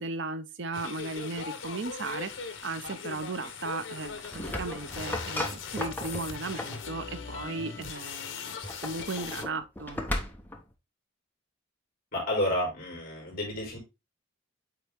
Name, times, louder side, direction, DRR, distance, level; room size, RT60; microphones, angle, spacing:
voice 1, 0.0-8.6 8.8-10.0, right 3 dB, 60° right, 0.6 m, -36 dB
sound 1, 0.7-9.5, left 5 dB, 70° left, 1.0 m, -40 dB
sound 2, 4.0-6.9 8.5-10.6, left 1 dB, 10° left, 0.8 m, -36 dB
voice 2, 12.1-13.8, left 1 dB, 45° left, 4.1 m, -30 dB
8.6 x 3.5 x 3.4 m
head